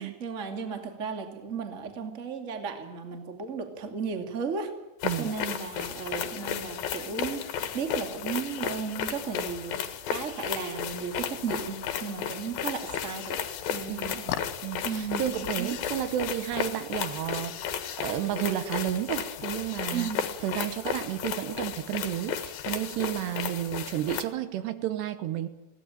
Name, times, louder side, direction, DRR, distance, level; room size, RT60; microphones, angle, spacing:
voice 1, 0.0-4.7 5.2-13.4 13.7-14.2 14.8-15.2 15.6-15.8 19.9-20.2, right 6 dB, 25° right, 5 dB, 1.7 m, -35 dB
sound 1, 5.0-24.2, left 8 dB, 65° left, 2.9 m, -34 dB
sound 2, 6.1-17.4, left 11 dB, 90° left, 3.4 m, -45 dB
voice 2, 13.9-20.1 20.4-25.5, right 12 dB, 80° right, 11 dB, 3.2 m, -32 dB
22.0 x 17.0 x 8.9 m, 1.1 s
omnidirectional pair, 5.1 m